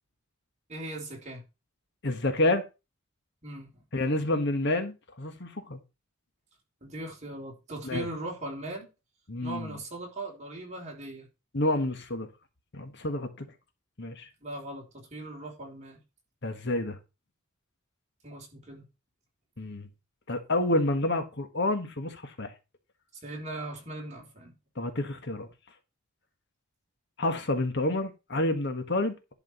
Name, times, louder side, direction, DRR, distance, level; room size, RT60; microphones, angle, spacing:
voice 1, 0.7-1.4 3.4-3.7 6.8-8.9 9.4-11.3 14.4-16.0 18.2-18.8 23.2-24.5, right 2 dB, 35° right, 3.8 m, -39 dB
voice 2, 2.0-2.6 3.9-5.8 7.8-8.1 9.3-9.8 11.5-12.3 12.7-13.4 14.0-14.3 16.4-17.0 19.6-19.9 20.3-22.5 24.8-25.5 27.2-29.1, left 2 dB, 55° left, 1.5 m, -29 dB
11.0 x 4.9 x 5.9 m
head